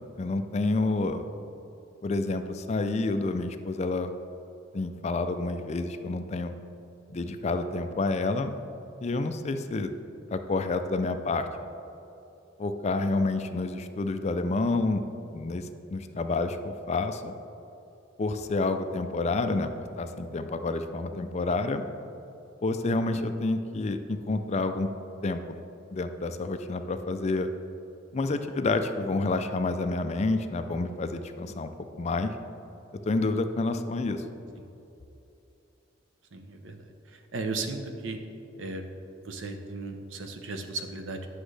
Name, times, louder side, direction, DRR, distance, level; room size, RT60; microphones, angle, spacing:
voice 1, 0.2-1.2 2.0-4.1 4.7-6.5 7.1-8.5 9.0-9.9 10.3-11.5 12.6-15.0 15.3-17.3 18.2-21.8 22.6-24.9 25.2-25.6 25.9-27.5 28.1-31.7 32.0-32.3 33.1-34.2, left 3 dB, 35° left, 8 dB, 0.4 m, -29 dB
voice 2, 36.3-36.8 37.1-38.2 38.6-38.8 39.2-41.3, right 3 dB, 85° right, 6 dB, 0.7 m, -35 dB
9.9 x 6.2 x 3.3 m, 2.9 s
head